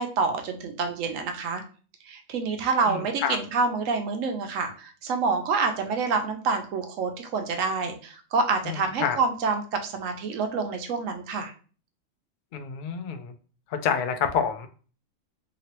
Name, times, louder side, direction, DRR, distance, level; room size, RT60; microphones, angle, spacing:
voice 1, 0.0-1.6 2.0-11.5, right 4 dB, 80° right, 6 dB, 1.0 m, -27 dB
voice 2, 2.9-3.4 8.7-9.2 12.5-13.3 13.7-14.7, left 7 dB, 75° left, 7 dB, 0.4 m, -28 dB
3.0 x 2.8 x 2.9 m, 0.39 s
omnidirectional pair, 1.4 m